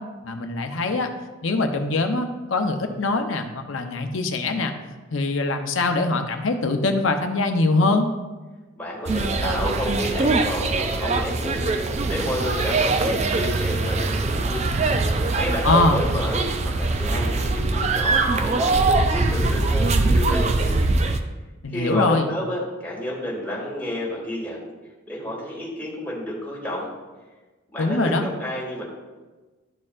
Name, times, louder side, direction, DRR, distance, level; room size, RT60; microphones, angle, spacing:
voice 1, 0.2-1.1 1.4-4.7 5.1-8.1 15.6-16.1 21.6-22.3 27.8-28.2, left 3 dB, 75° left, 6 dB, 0.7 m, -23 dB
voice 2, 8.8-11.6 12.0-14.7 15.4-20.8 21.7-24.6 25.1-26.9 27.7-28.8, equal, 10° left, -5 dB, 1.6 m, -30 dB
sound 1, 9.1-21.2, right 3 dB, 35° right, 0.4 m, -22 dB
12.0 x 4.4 x 2.4 m, 1.2 s
head